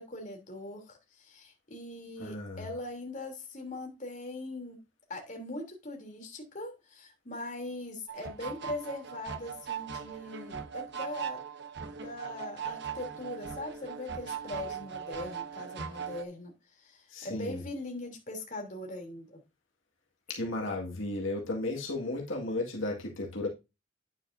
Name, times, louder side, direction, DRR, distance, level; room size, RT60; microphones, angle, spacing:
voice 1, 0.0-4.8 5.1-11.4 12.0-19.4, left 2 dB, 40° left, 3.1 m, -41 dB
voice 2, 2.2-2.6 17.1-17.6 20.3-23.5, left 2 dB, 75° left, 1.9 m, -34 dB
sound 1, 8.1-16.2, right 7 dB, 55° right, 1.0 m, -39 dB
9.5 x 8.9 x 2.6 m
head